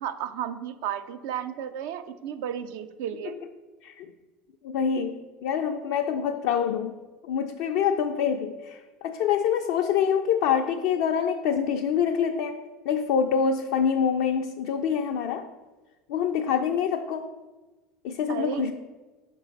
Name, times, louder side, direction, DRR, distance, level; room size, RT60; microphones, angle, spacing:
voice 1, 0.0-3.4 18.3-18.7, right 9 dB, 60° right, 9 dB, 0.4 m, -33 dB
voice 2, 4.6-7.0 7.3-8.8 9.0-15.5 16.1-17.3 18.0-18.7, left 7 dB, 55° left, 4 dB, 0.3 m, -26 dB
6.1 x 4.2 x 3.8 m, 1.2 s
figure-of-eight pair, 65°, 0 cm